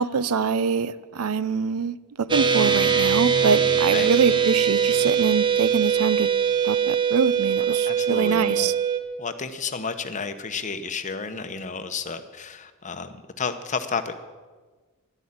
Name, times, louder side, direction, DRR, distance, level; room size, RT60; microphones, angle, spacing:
voice 1, 0.0-6.3 6.6-8.7, right 5 dB, 75° right, 17 dB, 0.6 m, -24 dB
sound 1, 2.3-9.0, right 7 dB, 20° right, 0.9 m, -22 dB
voice 2, 7.8-8.7 9.2-14.1, left 5 dB, 35° left, 8 dB, 1.0 m, -31 dB
12.0 x 11.0 x 8.6 m, 1.4 s
head